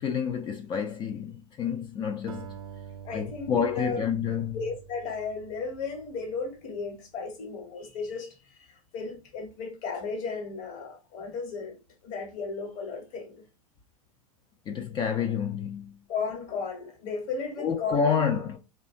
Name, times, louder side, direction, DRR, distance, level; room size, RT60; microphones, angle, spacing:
voice 1, 0.0-2.5 3.1-4.6 14.7-16.0 17.6-18.6, left 7 dB, 25° left, 0.3 m, -29 dB
Acoustic guitar, 2.3-6.7, right 8 dB, 75° right, 0.5 m, -46 dB
voice 2, 3.0-4.0 4.5-8.4 8.7-11.8 12.0-13.4 16.1-18.1, left 4 dB, 45° left, 1.1 m, -35 dB
2.7 x 2.2 x 2.4 m
hypercardioid pair, 105°, 19 cm